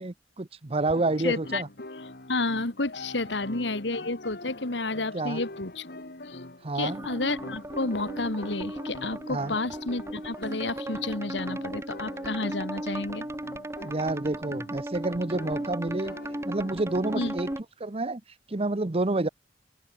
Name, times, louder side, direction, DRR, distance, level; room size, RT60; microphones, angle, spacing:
voice 1, 0.0-1.7 5.1-5.4 6.6-7.0 9.3-9.6 13.8-16.2 16.4-17.5 17.8-18.2 18.5-19.3, right 2 dB, 35° right, 0.8 m, -29 dB
sound 1, 0.8-17.6, left 2 dB, 60° left, 2.9 m, -44 dB
voice 2, 1.2-1.6 2.3-5.9 6.3-6.4 6.8-13.3 17.2-17.3, left 2 dB, 80° left, 2.2 m, -31 dB
sound 2, 6.8-17.6, right 1 dB, 15° right, 1.2 m, -36 dB
open air
head